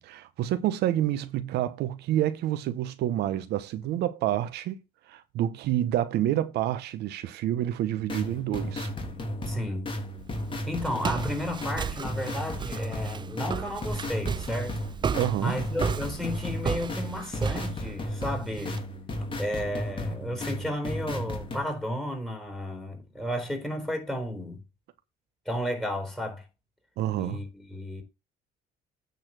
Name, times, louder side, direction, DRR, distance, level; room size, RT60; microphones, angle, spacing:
voice 1, 0.0-4.8 5.1-8.9 15.2-15.6 27.0-27.4, right 12 dB, 75° right, 0.9 m, -28 dB
sound 1, 7.9-21.6, left 1 dB, 30° left, 3.0 m, -34 dB
voice 2, 9.5-9.9 10.7-14.8 15.4-18.9 19.4-24.6 25.5-26.5 27.1-28.0, equal, ahead, 3.9 m, -33 dB
Walk footsteps, 10.2-18.8, right 6 dB, 25° right, 0.5 m, -35 dB
9.3 x 4.2 x 7.4 m
cardioid pair, 110°, 17 cm